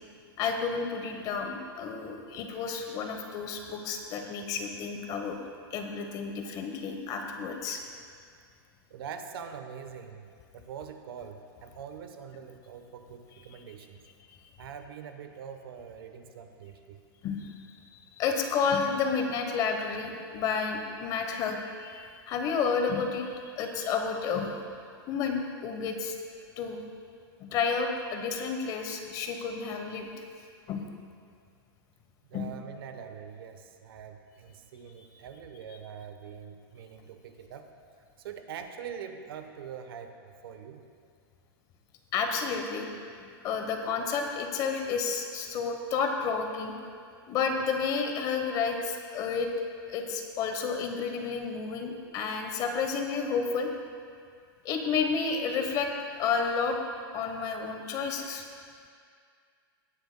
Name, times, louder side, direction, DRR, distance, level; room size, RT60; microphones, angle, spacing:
voice 1, 0.4-5.4 5.7-7.8 17.2-17.8 18.2-24.6 25.1-26.2 26.6-26.8 27.4-30.1 30.7-30.9 32.3-32.5 42.1-42.9 43.4-46.7 47.3-49.5 49.9-53.7 54.6-55.9 56.2-56.8 57.1-58.4, left 5 dB, 30° left, 4 dB, 0.9 m, -31 dB
voice 2, 8.9-10.3 10.5-14.0 14.6-17.0 32.3-37.7 38.2-40.8, right 7 dB, 70° right, 7 dB, 0.9 m, -43 dB
18.0 x 9.5 x 2.2 m, 2.2 s
supercardioid pair, 155°, 13 cm